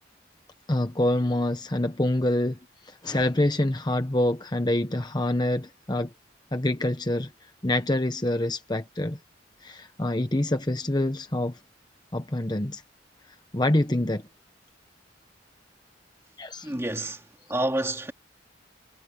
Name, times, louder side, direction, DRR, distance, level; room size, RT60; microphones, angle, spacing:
voice 1, 0.7-2.6 2.8-6.1 6.5-7.3 7.6-9.2 9.6-11.6 12.1-12.8 13.5-14.2 16.4-16.7, left 1 dB, 20° left, 1.0 m, -26 dB
voice 2, 16.6-17.2 17.5-18.1, right 1 dB, 15° right, 2.3 m, -28 dB
head